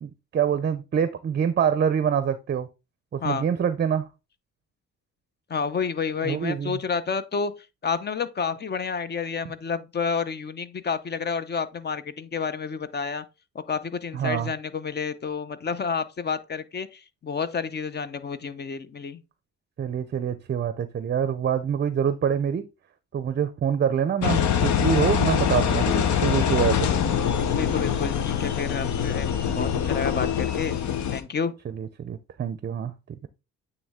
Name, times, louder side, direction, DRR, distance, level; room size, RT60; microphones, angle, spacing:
voice 1, 0.0-2.7 3.1-4.1 6.2-6.8 14.1-14.5 19.8-22.7 23.1-26.9 29.5-29.8 31.7-32.9 33.2-33.3, right 8 dB, 35° right, 0.5 m, -25 dB
voice 2, 5.5-7.5 7.8-13.2 13.5-19.2 27.5-30.8 31.1-31.5, left 5 dB, 35° left, 0.7 m, -30 dB
Engine, 24.2-31.2, left 8 dB, 70° left, 0.9 m, -24 dB
8.9 x 3.2 x 3.5 m
cardioid pair, 90°, 30 cm